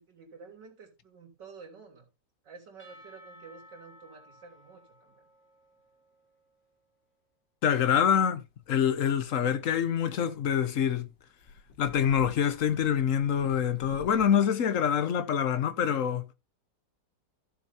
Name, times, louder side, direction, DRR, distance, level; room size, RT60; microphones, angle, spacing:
voice 1, 0.0-2.1 2.4-5.3, right 5 dB, 80° right, 3.9 m, -50 dB
Percussion / Church bell, 2.8-6.7, equal, 5° left, 5.3 m, -56 dB
voice 2, 7.6-8.4 8.7-11.1 11.8-16.3, left 8 dB, 55° left, 1.1 m, -26 dB
sound 1, 8.6-14.3, left 4 dB, 75° left, 2.4 m, -50 dB
15.0 x 7.0 x 2.8 m
omnidirectional pair, 1.9 m